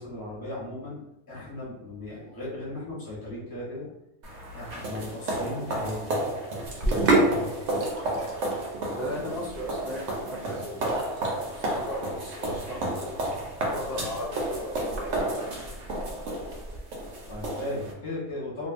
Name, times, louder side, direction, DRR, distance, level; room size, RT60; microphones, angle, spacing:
voice 1, 0.0-3.9 4.5-6.1 7.2-7.5 8.1-8.2 17.3-18.7, left 1 dB, 20° left, -7 dB, 0.9 m, -36 dB
sound 1, 4.2-17.9, right 1 dB, 85° right, 1.0 m, -32 dB
Sink (filling or washing), 6.7-17.5, right 2 dB, 55° right, 0.7 m, -32 dB
voice 2, 9.0-13.3 13.7-15.2, equal, 65° left, -6 dB, 0.7 m, -37 dB
2.6 x 2.3 x 2.4 m, 0.83 s
omnidirectional pair, 1.2 m